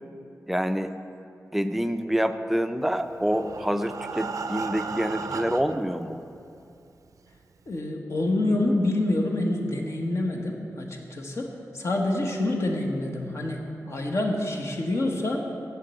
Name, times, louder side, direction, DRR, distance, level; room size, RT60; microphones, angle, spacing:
voice 1, 0.5-0.9 1.5-6.2, equal, 5° right, 9 dB, 0.4 m, -27 dB
Breathing, 3.0-6.0 6.7-6.8 7.2-7.3 7.7-7.8, right 5 dB, 75° right, 0.5 m, -35 dB
voice 2, 7.7-13.6 13.9-15.5, left 1 dB, 55° left, 1 dB, 1.3 m, -27 dB
7.4 x 7.4 x 7.7 m, 2.6 s
wide cardioid pair, 90°, 6 cm